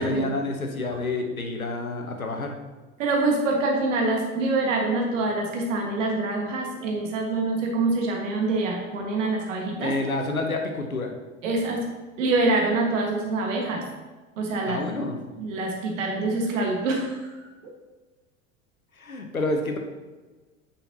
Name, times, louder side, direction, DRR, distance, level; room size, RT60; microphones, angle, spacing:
voice 1, 0.0-2.5 9.8-11.1 14.6-15.2 19.0-19.8, left 2 dB, 90° left, 3 dB, 0.9 m, -28 dB
voice 2, 3.0-9.9 11.4-11.8 12.2-13.8 14.4-14.8 15.4-17.7, right 2 dB, 65° right, 1 dB, 1.7 m, -25 dB
8.8 x 5.7 x 2.8 m, 1.3 s
figure-of-eight pair, 80°, 41 cm